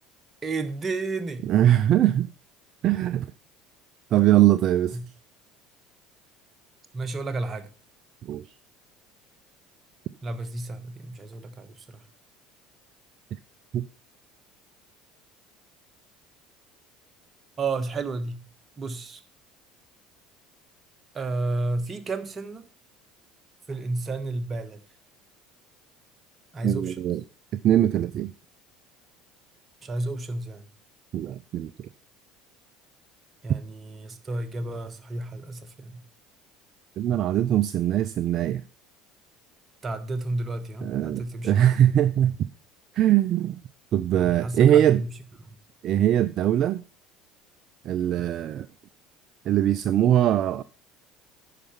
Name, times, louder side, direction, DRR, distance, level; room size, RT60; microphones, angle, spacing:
voice 1, 0.4-1.5 4.9-5.0 6.9-7.7 10.2-12.0 17.6-18.4 18.8-19.2 21.1-22.6 23.7-24.8 26.5-27.1 29.8-30.7 33.4-36.0 39.8-41.5 44.1-45.1 45.4-45.6, right 2 dB, 30° right, 1.3 m, -32 dB
voice 2, 1.4-2.3 2.8-3.3 4.1-5.0 8.3-8.4 13.7-13.8 26.6-27.2 27.5-28.3 31.1-31.9 37.0-38.6 40.8-42.4 42.9-43.6 43.9-45.0 45.8-46.8 47.8-48.7 49.5-50.6, right 11 dB, 50° right, 0.4 m, -21 dB
9.9 x 5.9 x 5.7 m
figure-of-eight pair, 65°, 0 cm